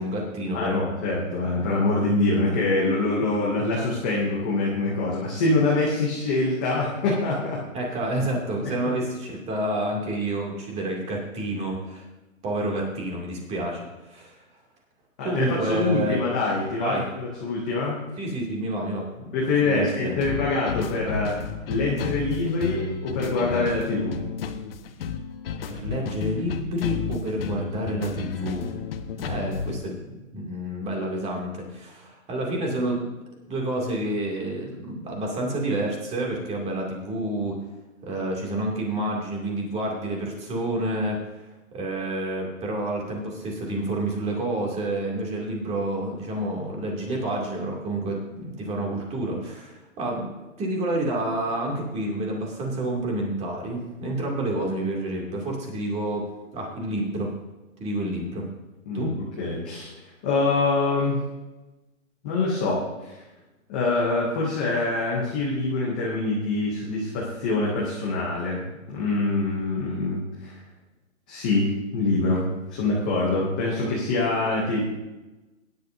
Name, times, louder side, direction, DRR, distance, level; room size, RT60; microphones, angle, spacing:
voice 1, 0.0-0.8 7.7-12.1 12.4-14.4 15.2-16.2 16.8-17.1 18.2-20.2 25.7-28.7 29.2-33.0 33.5-37.6 38.0-41.2 41.7-50.3 50.6-56.3 56.5-57.3 57.8-58.5 58.9-59.1, right 1 dB, 15° right, 0 dB, 2.3 m, -29 dB
voice 2, 0.5-7.6 8.8-8.9 15.2-18.0 19.3-21.3 21.7-24.2 58.9-59.1 59.4-59.9 60.2-61.2 62.2-63.2 63.7-70.6 71.3-74.9, left 2 dB, 5° left, -5 dB, 0.4 m, -25 dB
sound 1, 20.2-29.8, left 6 dB, 45° left, 1.0 m, -32 dB
18.5 x 10.5 x 2.6 m, 1.1 s
hypercardioid pair, 150°, 41 cm